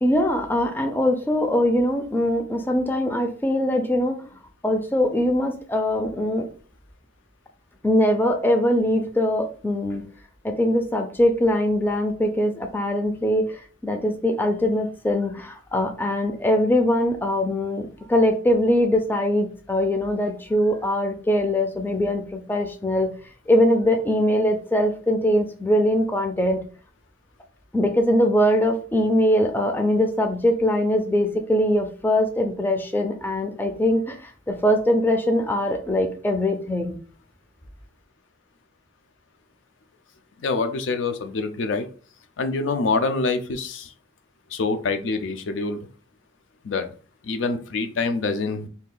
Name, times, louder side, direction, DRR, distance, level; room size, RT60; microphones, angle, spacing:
voice 1, 0.0-4.2 4.6-6.4 7.8-10.0 10.4-23.1 23.5-26.6 27.7-37.0, left 1 dB, 10° left, 4 dB, 0.3 m, -22 dB
voice 2, 40.4-41.9 42.4-43.9 44.5-45.9 46.6-46.9 47.2-48.7, left 3 dB, 85° left, 8 dB, 0.5 m, -25 dB
2.8 x 2.4 x 3.7 m, 0.41 s
head